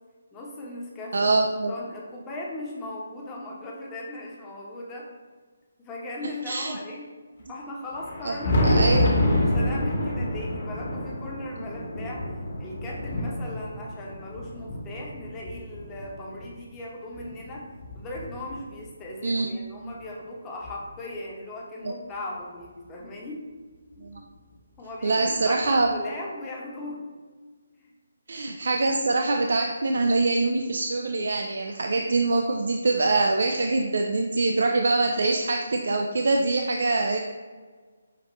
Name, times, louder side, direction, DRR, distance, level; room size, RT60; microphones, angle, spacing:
voice 1, 0.3-1.3 1.7-5.1 5.8-7.1 7.5-9.0 9.4-12.2 12.6-17.7 17.9-23.5 23.9-24.1 24.8-27.0, left 1 dB, 15° left, -3 dB, 0.9 m, -38 dB
voice 2, 1.1-1.7 6.5-6.8 8.2-8.4 8.6-9.1 19.2-19.5 21.8-21.9 24.0-24.2 25.0-25.9 28.3-37.2, right 3 dB, 65° right, 3 dB, 0.3 m, -24 dB
Thunder, 7.9-16.5 17.1-18.8 20.0-20.1 20.6-20.7 22.6-22.7 24.1-24.2 25.7-25.8, left 1 dB, 50° left, 1.3 m, -28 dB
5.8 x 2.8 x 3.0 m, 1.5 s
figure-of-eight pair, 150°, 0 cm